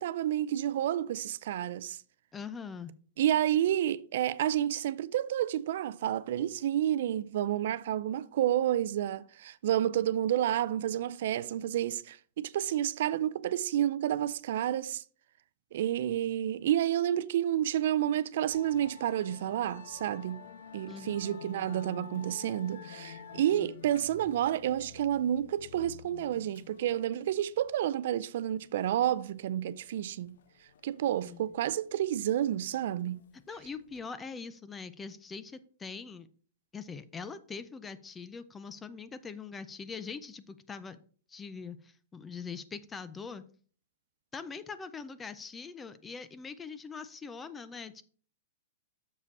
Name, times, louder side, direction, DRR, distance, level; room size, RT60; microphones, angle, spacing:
voice 1, 0.0-2.0 3.2-15.0 15.7-20.5 20.7-30.4 30.8-33.2, right 11 dB, 60° right, 0.4 m, -30 dB
voice 2, 2.3-2.9 20.9-21.4 31.2-31.4 33.5-36.3 36.7-41.0 41.3-43.4 44.3-48.0, left 5 dB, 10° left, 0.4 m, -42 dB
Musical instrument, 18.5-34.0, left 7 dB, 75° left, 0.6 m, -50 dB
6.7 x 4.9 x 4.6 m
supercardioid pair, 160°, 0 cm